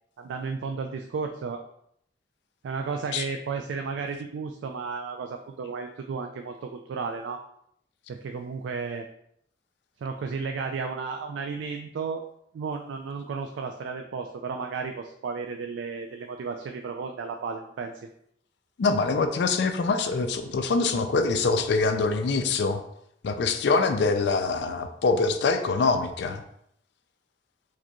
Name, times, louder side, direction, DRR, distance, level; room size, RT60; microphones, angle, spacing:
voice 1, 0.2-1.6 2.6-7.4 8.1-9.1 10.0-12.2 12.5-18.0, right 5 dB, 85° right, 4 dB, 0.3 m, -33 dB
voice 2, 18.8-22.8 23.2-26.4, left 4 dB, 70° left, 7 dB, 0.4 m, -24 dB
4.7 x 2.9 x 2.3 m, 0.71 s
head